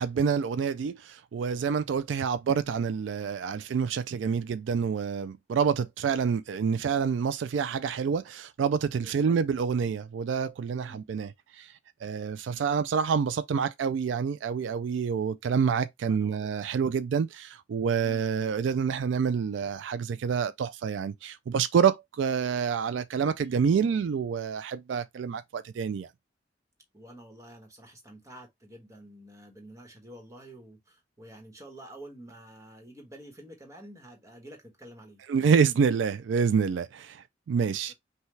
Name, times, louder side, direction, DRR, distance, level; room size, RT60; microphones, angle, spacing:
voice 1, 0.0-11.3 11.6-11.7 12.0-26.1 35.3-37.9, right 6 dB, 80° right, 0.3 m, -27 dB
voice 2, 9.0-9.4 10.8-11.0 16.0-16.5 26.9-35.2 37.9-38.0, right 1 dB, 15° right, 1.2 m, -49 dB
5.6 x 2.2 x 3.1 m
head